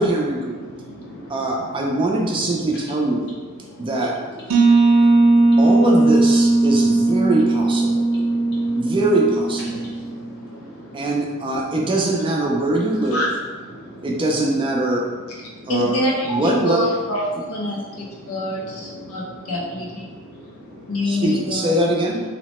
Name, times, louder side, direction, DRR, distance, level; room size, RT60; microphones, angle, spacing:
voice 1, 0.0-0.6 1.3-3.2 3.8-4.2 5.6-7.9 8.8-9.8 10.9-13.2 14.0-15.0 15.7-16.0 16.2-16.8 21.0-22.2, right 2 dB, 25° right, -1 dB, 0.3 m, -22 dB
voice 2, 0.5-2.8 3.5-5.7 6.6-7.3 7.9-9.0 9.7-11.7 13.7-14.1 15.3-15.7 17.7-19.6 20.0-21.3, equal, 50° left, -6 dB, 0.9 m, -41 dB
sound 1, 4.5-10.1, right 2 dB, 90° right, 0.4 m, -17 dB
voice 3, 15.7-20.0 20.9-21.7, left 1 dB, 90° left, -2 dB, 0.6 m, -25 dB
2.8 x 2.1 x 2.9 m, 1.4 s
head